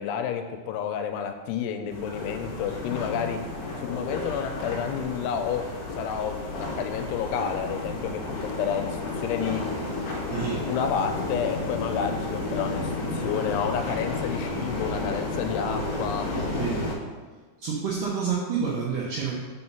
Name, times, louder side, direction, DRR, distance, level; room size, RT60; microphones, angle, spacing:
voice 1, 0.0-3.4 3.8-5.7 5.9-9.6 10.7-16.3, left 7 dB, 90° left, 6 dB, 2.7 m, -30 dB
sound 1, 1.9-16.9, left 2 dB, 70° left, 1.4 m, -32 dB
voice 2, 10.3-10.6 16.6-16.8 17.6-19.3, right 6 dB, 75° right, -4 dB, 2.0 m, -28 dB
5.4 x 5.0 x 5.8 m, 1.4 s
omnidirectional pair, 4.8 m